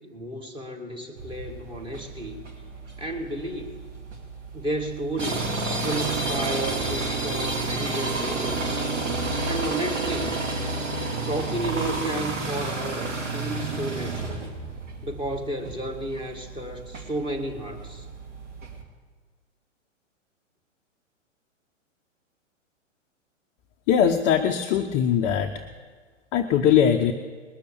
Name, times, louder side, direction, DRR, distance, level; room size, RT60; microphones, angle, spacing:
voice 1, 0.0-2.4 3.0-3.8 4.5-5.5 5.8-8.9 9.4-10.4 11.3-14.5 15.0-18.1, right 1 dB, 15° right, 4 dB, 1.5 m, -32 dB
sound 1, 1.2-18.8, right 3 dB, 70° right, 2.4 m, -31 dB
voice 2, 23.9-25.5 26.3-27.1, left 8 dB, 20° left, 4 dB, 0.5 m, -21 dB
20.0 x 6.7 x 8.2 m, 1.5 s
figure-of-eight pair, 115°, 38 cm